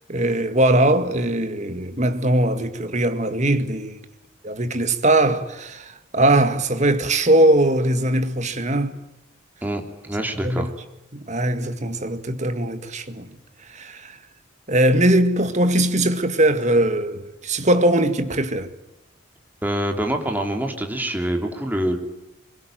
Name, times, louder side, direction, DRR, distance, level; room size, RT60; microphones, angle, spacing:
voice 1, 0.1-4.0 4.4-9.0 10.4-10.7 11.1-13.3 13.7-14.2 14.7-18.7, right 1 dB, 40° right, 1.9 m, -20 dB
voice 2, 9.6-10.7 19.6-22.0, right 1 dB, 10° right, 3.2 m, -25 dB
24.0 x 22.0 x 9.2 m
head